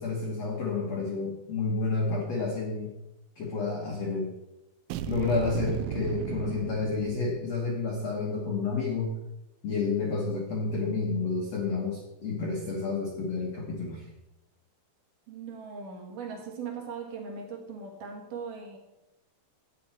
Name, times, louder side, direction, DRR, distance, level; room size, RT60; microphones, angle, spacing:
voice 1, 0.0-2.9 3.4-4.3 5.0-9.2 9.6-14.1, left 3 dB, 75° left, -1 dB, 1.5 m, -30 dB
sound 1, 4.9-7.7, right 12 dB, 85° right, 2.7 m, -36 dB
voice 2, 15.3-18.8, right 5 dB, 60° right, 2 dB, 2.4 m, -39 dB
12.0 x 9.1 x 4.4 m, 0.92 s
omnidirectional pair, 5.3 m